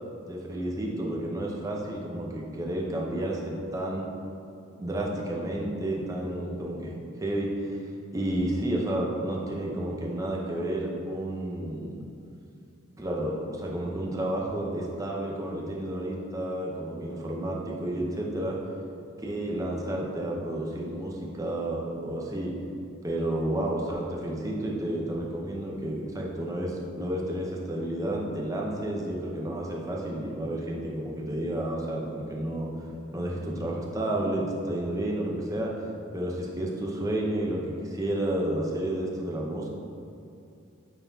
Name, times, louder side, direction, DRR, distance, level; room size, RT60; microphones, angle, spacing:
voice 1, 0.3-4.0 4.8-6.9 7.2-7.8 8.1-12.0 13.0-18.6 19.2-22.5 23.0-32.7 33.1-35.7 36.1-39.7, right 1 dB, 15° right, -3 dB, 0.7 m, -31 dB
9.0 x 4.1 x 2.8 m, 2.7 s
head